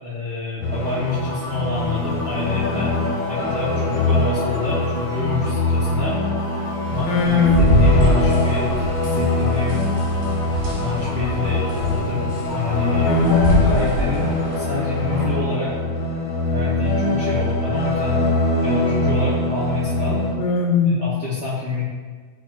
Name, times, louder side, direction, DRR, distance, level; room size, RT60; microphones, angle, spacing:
voice 1, 0.0-3.0 3.3-6.1 6.9-9.8 10.7-12.2 12.5-13.1 13.6-15.7 16.5-18.2 18.6-20.2 20.8-21.8, left 3 dB, 70° right, -8 dB, 1.2 m, -27 dB
sound 1, 0.6-20.4, left 2 dB, 70° left, 2.1 m, -23 dB
sound 2, 0.7-15.3, left 2 dB, 50° left, 1.9 m, -34 dB
sound 3, 6.8-14.6, equal, 45° right, 1.6 m, -24 dB
voice 2, 7.1-7.8 13.0-13.6 20.1-21.0, left 5 dB, 90° left, 0 dB, 2.6 m, -19 dB
10.0 x 4.3 x 2.5 m, 1.5 s
omnidirectional pair, 3.7 m